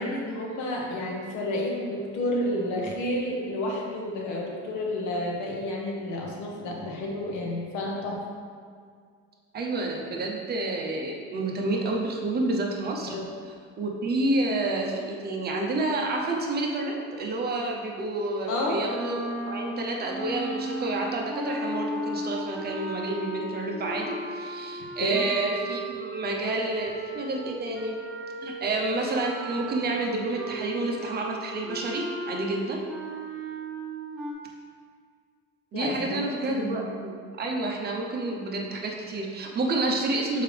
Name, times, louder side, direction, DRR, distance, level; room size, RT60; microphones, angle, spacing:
voice 1, 0.0-8.2 13.1-13.3 18.5-18.8 25.0-25.2 35.7-36.9, left 1 dB, 75° left, -1 dB, 1.2 m, -30 dB
voice 2, 9.5-13.1 13.8-27.9 28.4-32.8 35.7-40.4, right 2 dB, 35° right, 0 dB, 0.8 m, -29 dB
sound 1, 18.8-28.7 29.1-34.3, right 1 dB, ahead, 1.0 m, -36 dB
6.6 x 4.6 x 3.4 m, 2.1 s
cardioid pair, 155°, 29 cm